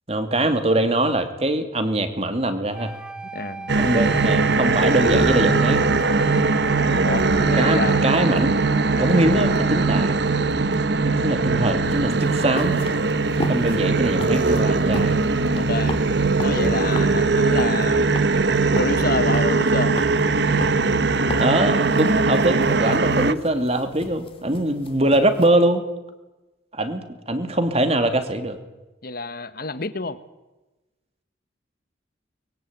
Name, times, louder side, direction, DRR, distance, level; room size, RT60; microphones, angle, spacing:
voice 1, 0.1-2.9 3.8-5.8 7.6-8.6 9.0-10.2 11.0-12.8 13.5-15.2 21.4-25.8 26.7-28.6, right 1 dB, 35° right, 8 dB, 2.5 m, -22 dB
sound 1, 2.7-10.8, right 2 dB, 5° right, 1.4 m, -39 dB
voice 2, 3.3-3.8 7.0-8.0 15.5-16.0 16.4-18.1 18.7-20.0 29.0-30.2, left 3 dB, 50° left, 13 dB, 1.4 m, -28 dB
sound 2, 3.7-23.3, right 3 dB, 60° right, 1.0 m, -20 dB
sound 3, 11.8-25.5, left 1 dB, 30° left, 2.4 m, -37 dB
24.0 x 22.0 x 9.5 m, 1.1 s
head